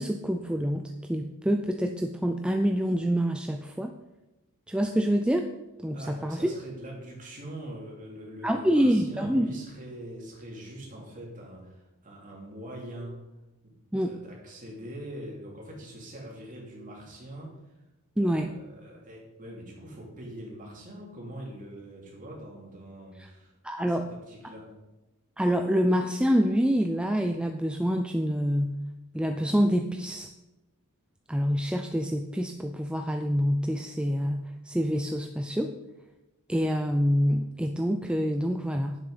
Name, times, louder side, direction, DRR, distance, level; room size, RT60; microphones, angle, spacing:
voice 1, 0.0-3.9 4.7-5.4 5.8-6.5 8.4-9.5 13.9-14.1 18.2-18.5 23.6-24.1 25.4-28.8 29.1-30.3 31.3-35.7 36.5-39.0, equal, 5° right, 5 dB, 0.4 m, -26 dB
voice 2, 5.9-13.2 13.6-13.7 14.0-17.8 18.2-24.8, right 1 dB, 35° right, -2 dB, 2.8 m, -43 dB
9.6 x 7.4 x 5.5 m, 1.0 s
head